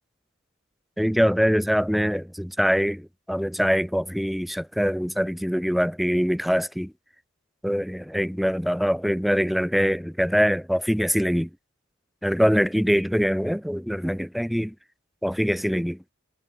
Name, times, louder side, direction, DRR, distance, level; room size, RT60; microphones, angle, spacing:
voice 1, 1.0-6.9 7.6-11.5 12.2-14.8 15.2-16.0, equal, ahead, 6.8 m, -23 dB
head